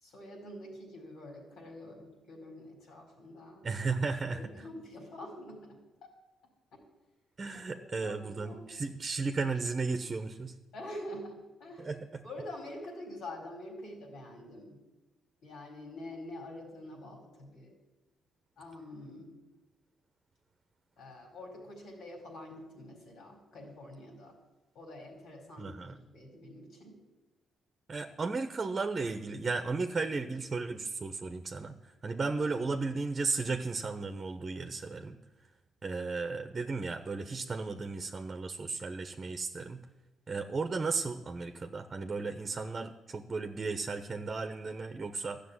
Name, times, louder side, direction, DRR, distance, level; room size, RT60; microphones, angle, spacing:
voice 1, 0.0-3.7 4.3-6.1 7.7-8.8 10.7-11.9 12.2-14.8 15.4-17.7 18.6-19.4 21.0-24.4 24.7-27.0, left 1 dB, 80° left, 1 dB, 4.5 m, -46 dB
voice 2, 3.6-4.5 7.4-10.5 11.8-12.0 25.6-26.0 27.9-35.2 35.8-39.8 40.3-45.4, right 4 dB, 30° right, 7 dB, 0.9 m, -35 dB
13.0 x 6.7 x 9.7 m, 1.1 s
cardioid pair, 90°, 0 cm